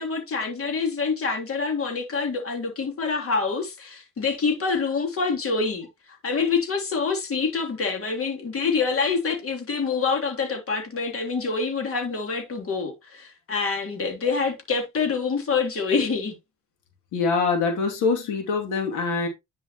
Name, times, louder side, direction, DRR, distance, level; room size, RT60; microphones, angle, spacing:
voice 1, 0.0-5.9 6.2-16.3, left 4 dB, 45° left, 3.3 m, -26 dB
voice 2, 17.1-19.3, left 4 dB, 90° left, 2.7 m, -24 dB
10.0 x 5.7 x 3.0 m
cardioid pair, 90°, 30 cm